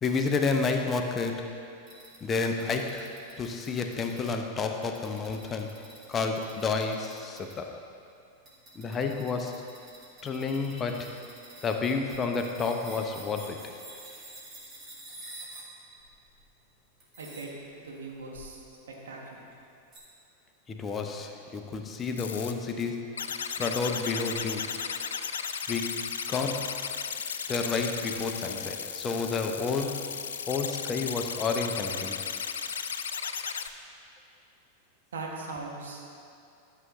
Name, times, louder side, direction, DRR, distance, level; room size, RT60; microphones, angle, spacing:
voice 1, 0.0-1.7 2.2-7.8 8.7-9.7 10.2-11.2 11.6-13.8 20.7-24.8 25.7-26.9 27.5-30.1 30.5-32.2, left 4 dB, 20° left, 4 dB, 0.7 m, -31 dB
sound 1, 1.9-4.3 4.8-7.5 8.4-15.7 16.0-16.4 17.0-17.5 18.3-18.5 19.4-19.5 19.9-20.0, right 1 dB, 25° right, 2.2 m, -48 dB
voice 2, 17.2-17.5 17.8-18.6 19.0-19.2 35.1-36.1, right 3 dB, 65° right, -1 dB, 1.3 m, -39 dB
sound 2, 22.2-22.5 23.2-33.7, left 7 dB, 65° left, 0.3 m, -35 dB
12.5 x 6.8 x 3.1 m, 2.6 s
figure-of-eight pair, 90°, 0 cm